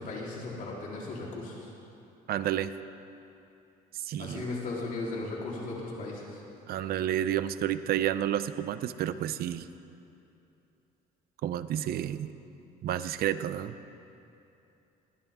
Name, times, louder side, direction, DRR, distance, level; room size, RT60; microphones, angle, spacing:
voice 1, 0.0-1.7 4.2-6.4, left 2 dB, 55° left, -4 dB, 3.7 m, -36 dB
voice 2, 2.3-2.7 3.9-4.5 6.7-9.7 11.4-12.3 12.8-13.7, right 11 dB, 65° right, 12 dB, 0.6 m, -30 dB
21.5 x 15.5 x 3.7 m, 2.8 s
cardioid pair, 110°, 17 cm